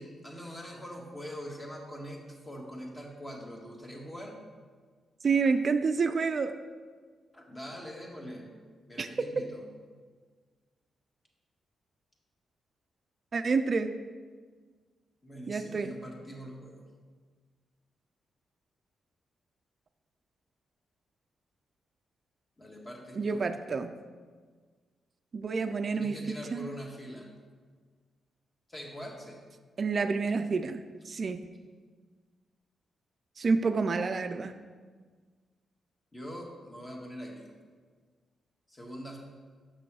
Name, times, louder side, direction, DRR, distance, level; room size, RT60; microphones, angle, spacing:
voice 1, 0.0-4.4 7.3-8.5 8.9-9.6 15.2-16.8 22.6-23.5 25.9-27.3 28.7-29.4 36.1-37.5 38.7-39.2, equal, 25° left, -1 dB, 1.8 m, -43 dB
voice 2, 5.2-6.6 9.0-9.3 13.3-14.0 15.5-16.0 23.2-24.0 25.3-26.7 29.8-31.5 33.4-34.6, right 4 dB, 50° right, 8 dB, 0.4 m, -29 dB
6.2 x 6.0 x 4.8 m, 1.5 s
supercardioid pair, 55°, 0 cm